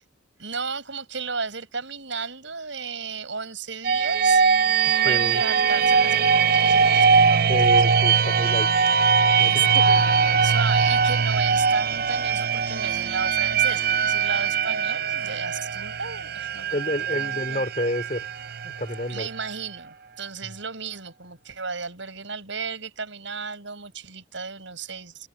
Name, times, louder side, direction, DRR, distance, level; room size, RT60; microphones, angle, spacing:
voice 1, 0.4-4.7 5.0-7.8 9.3-16.8 17.1-17.7 19.1-25.3, right 5 dB, 70° right, 5.8 m, -34 dB
sound 1, 3.8-19.5, right 6 dB, 50° right, 0.6 m, -21 dB
voice 2, 5.0-5.4 7.5-8.7 9.4-10.0 16.7-18.3 18.6-19.3, left 1 dB, 40° left, 3.8 m, -29 dB
head